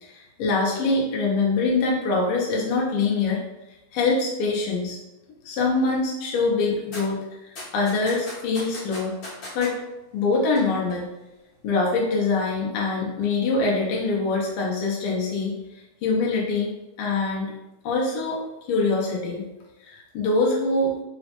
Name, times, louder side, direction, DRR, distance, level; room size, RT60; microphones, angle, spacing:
voice 1, 0.0-3.4 3.9-5.0 5.4-9.1 9.5-9.8 10.1-11.1 11.6-17.5 17.8-18.4 18.7-19.4 19.8-21.0, left 3 dB, 80° left, -3 dB, 1.6 m, -24 dB
sound 1, 6.9-7.0 7.6-9.7 10.3-10.6 10.9-11.0, left 1 dB, 60° left, 1.8 m, -37 dB
4.1 x 2.1 x 2.8 m, 0.98 s
omnidirectional pair, 2.4 m